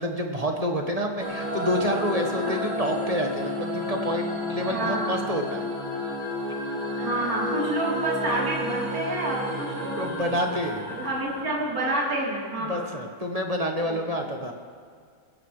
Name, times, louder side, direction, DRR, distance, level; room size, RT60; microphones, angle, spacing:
voice 1, 0.0-5.7 9.7-10.8 12.6-14.5, equal, 20° right, 2 dB, 1.1 m, -28 dB
sound 1, 1.2-12.1, left 1 dB, 85° right, 4.4 m, -31 dB
voice 2, 4.7-5.2 7.0-10.3 11.0-12.9 13.9-14.0, right 1 dB, 45° right, -6 dB, 4.1 m, -29 dB
21.0 x 16.5 x 3.3 m, 2.2 s
omnidirectional pair, 2.2 m